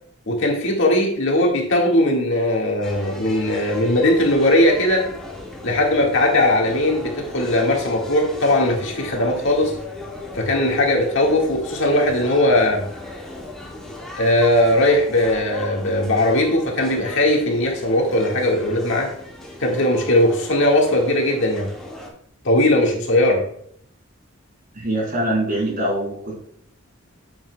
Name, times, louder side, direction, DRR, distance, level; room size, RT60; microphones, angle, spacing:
voice 1, 0.3-5.1 5.6-9.8 10.3-12.8 14.2-19.1 19.6-21.7 22.4-23.5, left 1 dB, 60° left, 0 dB, 1.8 m, -19 dB
sound 1, 2.8-22.1, left 1 dB, 5° left, 1.7 m, -37 dB
voice 2, 24.7-26.4, right 1 dB, 45° right, -1 dB, 3.2 m, -23 dB
9.4 x 7.1 x 2.2 m, 0.63 s
head